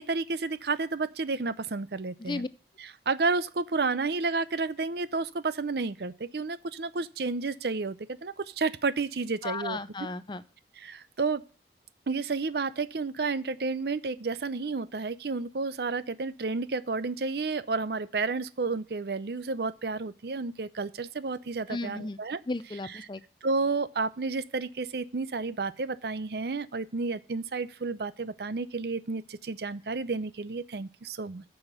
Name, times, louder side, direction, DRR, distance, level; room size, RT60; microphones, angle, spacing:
voice 1, 0.0-2.4 2.8-9.8 10.8-11.4 12.1-22.4 22.8-23.0 23.4-31.5, right 4 dB, 60° right, 0.6 m, -31 dB
voice 2, 9.4-10.4 21.7-22.2 22.5-23.2, left 3 dB, 25° left, 0.5 m, -34 dB
9.0 x 5.8 x 6.5 m
head